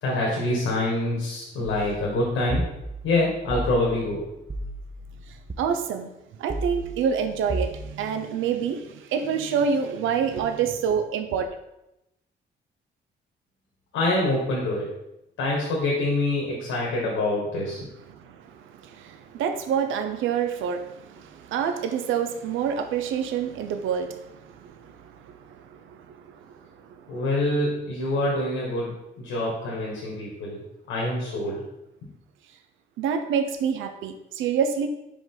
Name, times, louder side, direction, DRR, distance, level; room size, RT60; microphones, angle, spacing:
voice 1, 0.0-2.6 3.0-4.2 13.9-14.9 15.4-17.8 27.1-30.6 30.9-31.6, left 2 dB, 90° left, -4 dB, 1.6 m, -25 dB
sound 1, 2.5-5.6 6.5-7.8, right 1 dB, 20° right, 0.6 m, -34 dB
voice 2, 5.3-6.1 6.4-11.5 18.1-27.2 33.0-34.9, right 7 dB, 85° right, 7 dB, 0.6 m, -28 dB
5.1 x 5.0 x 3.8 m, 0.90 s
cardioid pair, 90°, 20 cm